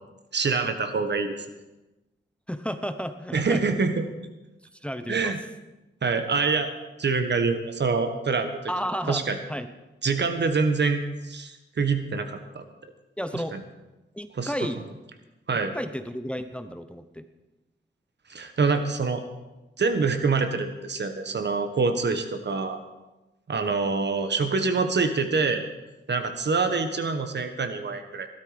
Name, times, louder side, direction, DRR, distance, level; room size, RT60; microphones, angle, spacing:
voice 1, 0.3-1.3 3.3-4.0 5.1-5.4 6.0-6.7 7.0-8.6 9.1-9.4 10.0-12.6 13.5-13.6 14.4-14.5 15.5-15.7 18.3-19.2 19.8-22.8 23.5-25.6 26.1-28.3, right 4 dB, 60° right, 7 dB, 1.6 m, -25 dB
voice 2, 2.5-3.6 4.8-5.3 8.7-9.7 13.2-13.5 14.1-14.8 15.7-17.2, equal, 5° left, 9 dB, 0.9 m, -32 dB
16.5 x 12.5 x 5.2 m, 1.0 s
wide cardioid pair, 90°, 20 cm